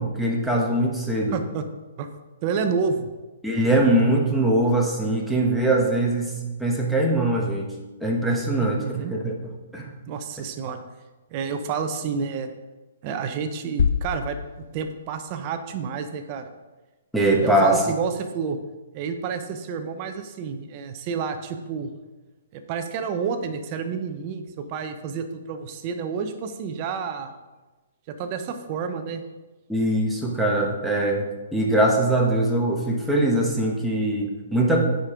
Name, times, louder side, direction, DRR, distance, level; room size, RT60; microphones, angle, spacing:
voice 1, 0.0-1.4 3.4-7.7 8.0-9.3 9.7-9.9 17.1-17.8 29.7-34.8, right 1 dB, ahead, -2 dB, 1.1 m, -22 dB
voice 2, 1.3-1.7 2.0-2.1 2.4-3.1 8.6-9.1 10.1-10.8 11.3-12.5 13.0-16.5 17.4-18.6 18.9-21.9 22.5-27.3 28.1-29.2, right 6 dB, 35° right, 7 dB, 0.7 m, -29 dB
sound 1, 13.8-15.6, left 7 dB, 60° left, 0.3 m, -27 dB
8.9 x 5.3 x 3.7 m, 1.2 s
hypercardioid pair, 150°, 0 cm